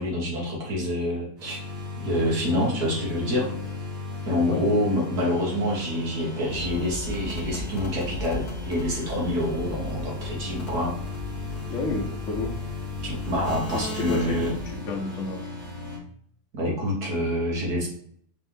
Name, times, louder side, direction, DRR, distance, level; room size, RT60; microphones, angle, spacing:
voice 1, 0.0-1.6 2.0-3.5 4.3-11.0 13.0-14.6 16.5-17.9, left 1 dB, 85° right, -4 dB, 2.0 m, -27 dB
sound 1, 1.4-16.0, left 3 dB, 30° right, 1.1 m, -36 dB
sound 2, 6.5-14.8, left 1 dB, 90° left, 1.3 m, -37 dB
voice 2, 11.7-12.5 13.7-14.4 14.9-15.5, left 3 dB, 55° left, -1 dB, 1.1 m, -30 dB
4.3 x 3.1 x 3.6 m, 0.64 s
omnidirectional pair, 1.6 m